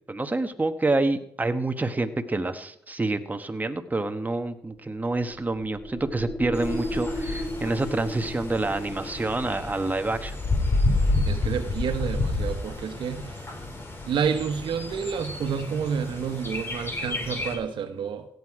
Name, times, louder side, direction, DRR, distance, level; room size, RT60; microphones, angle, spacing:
voice 1, 0.1-10.3, right 2 dB, 20° right, 8 dB, 1.2 m, -27 dB
sound 1, 4.7-9.6, left 1 dB, 10° left, 3.7 m, -34 dB
Bird, 6.5-17.6, left 2 dB, 30° left, 4.9 m, -30 dB
voice 2, 11.3-13.4 14.1-18.3, right 7 dB, 75° right, 9 dB, 1.4 m, -29 dB
16.5 x 8.2 x 4.9 m, 0.73 s
supercardioid pair, 60°, 8 cm